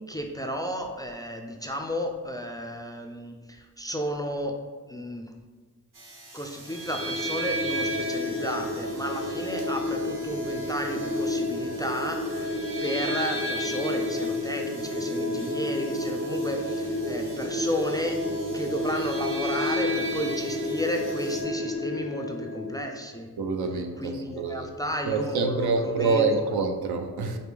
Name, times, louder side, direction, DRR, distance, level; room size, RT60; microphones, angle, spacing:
voice 1, 0.1-4.6 4.9-5.3 6.3-18.2 18.5-23.3 24.0-26.4, equal, 10° left, 3 dB, 0.3 m, -33 dB
sound 1, 5.9-21.4, right 2 dB, 50° right, 1.0 m, -48 dB
sound 2, 6.7-22.8, left 1 dB, 35° right, 0.6 m, -30 dB
voice 2, 23.4-24.7 25.1-27.4, right 4 dB, 70° right, 5 dB, 0.5 m, -26 dB
4.9 x 2.2 x 3.3 m, 1.4 s
cardioid pair, 45°, 40 cm